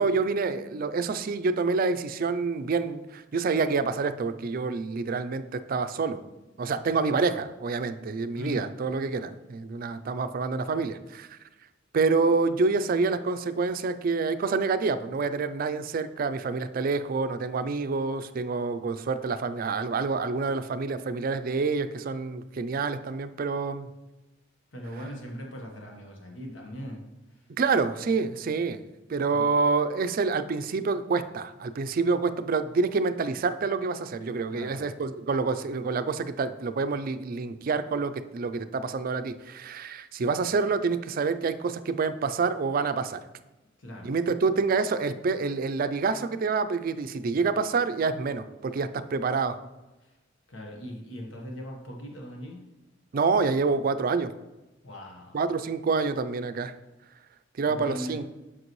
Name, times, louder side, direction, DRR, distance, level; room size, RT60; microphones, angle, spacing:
voice 1, 0.0-6.2 6.6-11.4 11.9-23.9 27.6-28.8 29.1-43.2 44.0-49.6 53.1-54.3 55.3-56.7 57.6-58.2, right 4 dB, 50° right, 11 dB, 0.4 m, -27 dB
voice 2, 8.4-8.7 24.7-27.5 29.3-29.4 34.5-34.9 43.8-44.1 50.0-50.2 50.5-52.6 54.8-55.4 57.6-58.2, equal, 85° left, 1 dB, 1.2 m, -39 dB
7.8 x 5.8 x 3.1 m, 1.0 s
head